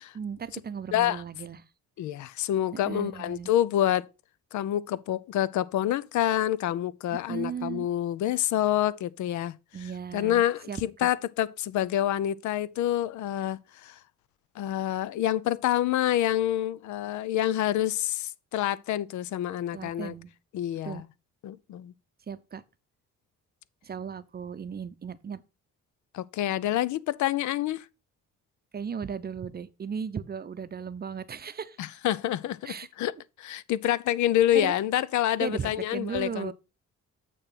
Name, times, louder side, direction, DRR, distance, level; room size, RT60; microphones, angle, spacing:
voice 1, 0.1-1.6 2.9-3.5 7.3-7.9 9.7-11.1 19.7-20.3 20.8-21.0 22.3-22.6 23.8-25.4 28.7-32.0 32.6-32.9 34.5-34.7 35.4-36.5, right 6 dB, 30° right, 0.6 m, -36 dB
voice 2, 0.9-1.2 2.0-4.1 4.5-9.5 10.1-13.9 14.6-20.1 20.5-21.0 21.4-21.9 26.1-27.9 31.8-33.1 33.4-36.5, left 12 dB, 75° left, 0.5 m, -27 dB
8.8 x 3.1 x 5.6 m
cardioid pair, 90°, 30 cm